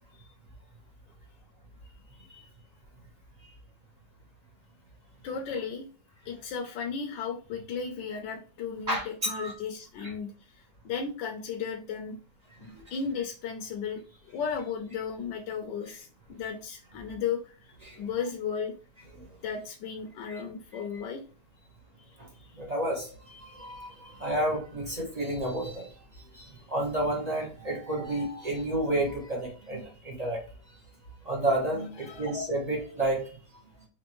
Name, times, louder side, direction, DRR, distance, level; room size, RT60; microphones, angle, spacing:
voice 1, 5.2-5.9 6.2-12.2 12.6-18.7 19.4-21.2 22.1-22.2 22.4-22.6 32.0-32.3, left 6 dB, 75° left, 2 dB, 1.3 m, -35 dB
voice 2, 8.9-9.5 12.7-12.8 17.8-18.0 19.2-19.3 20.3-20.4 22.2-22.3 22.5-25.9 26.3-30.4 31.2-33.4, right 1 dB, 30° right, -1 dB, 0.8 m, -31 dB
4.3 x 2.8 x 3.0 m, 0.39 s
omnidirectional pair, 2.1 m